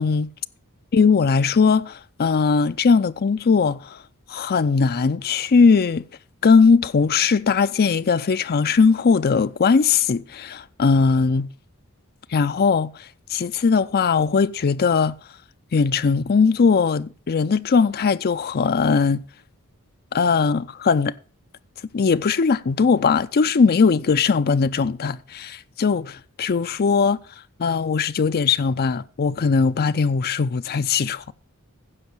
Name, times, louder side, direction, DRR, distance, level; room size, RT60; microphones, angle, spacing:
voice 1, 0.9-4.0 4.3-6.0 6.4-11.5 12.3-15.1 15.7-19.2 20.1-21.1 21.9-27.2 27.6-31.3, left 5 dB, 45° left, 0.5 m, -19 dB
15.5 x 5.8 x 4.5 m
head